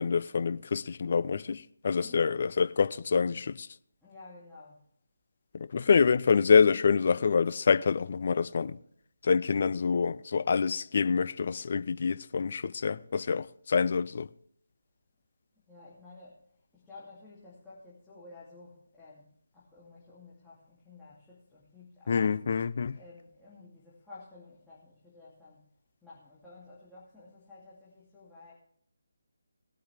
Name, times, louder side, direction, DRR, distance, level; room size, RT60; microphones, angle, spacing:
voice 1, 0.0-3.7 5.5-8.8 9.2-14.3 22.1-23.0, left 5 dB, 45° left, 0.5 m, -26 dB
voice 2, 4.0-4.8 15.7-22.4 22.9-25.7 26.0-28.5, left 3 dB, 5° left, 2.7 m, -52 dB
20.0 x 8.6 x 3.4 m
figure-of-eight pair, 150°, 0 cm